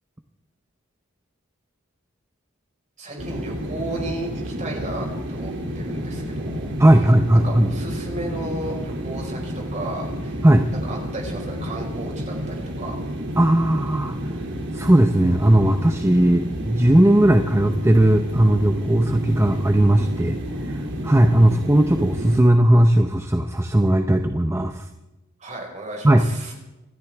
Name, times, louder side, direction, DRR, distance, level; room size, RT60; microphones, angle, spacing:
voice 1, 3.0-6.7 7.4-10.4 10.8-12.9 25.4-26.5, right 2 dB, 35° right, 0 dB, 4.9 m, -34 dB
sound 1, 3.2-22.4, equal, 55° right, 2.8 m, -30 dB
voice 2, 6.8-7.7 10.4-10.7 13.4-14.2 14.7-20.4 20.7-24.9 26.0-26.3, right 1 dB, 10° right, 6 dB, 0.7 m, -17 dB
26.5 x 13.5 x 3.5 m, 1.0 s
head